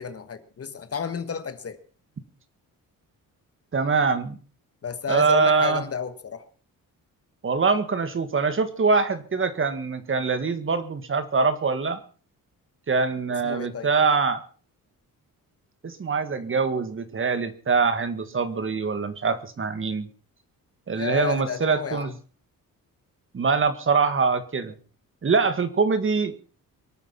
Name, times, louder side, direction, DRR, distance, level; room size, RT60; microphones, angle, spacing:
voice 1, 0.0-1.8 4.8-6.5 13.3-13.9 20.9-22.1, left 7 dB, 45° left, 1.5 m, -32 dB
voice 2, 3.7-4.4 5.1-5.8 7.4-12.0 12.9-14.4 15.8-20.1 20.9-22.1 23.3-24.7 25.2-26.3, right 4 dB, 35° right, 1.8 m, -23 dB
24.0 x 9.0 x 5.9 m
cardioid pair, 120°, 35 cm